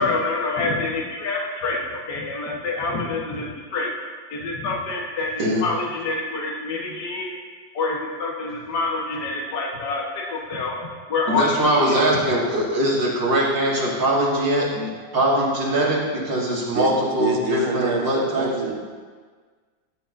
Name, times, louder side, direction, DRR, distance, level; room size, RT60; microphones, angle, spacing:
voice 1, 0.0-3.9 4.3-7.3 7.7-10.8 11.1-12.2 15.0-15.2, left 3 dB, 60° left, -2 dB, 1.8 m, -27 dB
voice 2, 11.3-18.5, right 1 dB, 70° right, -6 dB, 2.8 m, -21 dB
voice 3, 16.7-18.8, right 4 dB, 85° right, 0 dB, 2.0 m, -28 dB
13.0 x 9.2 x 2.6 m, 1.5 s
omnidirectional pair, 2.1 m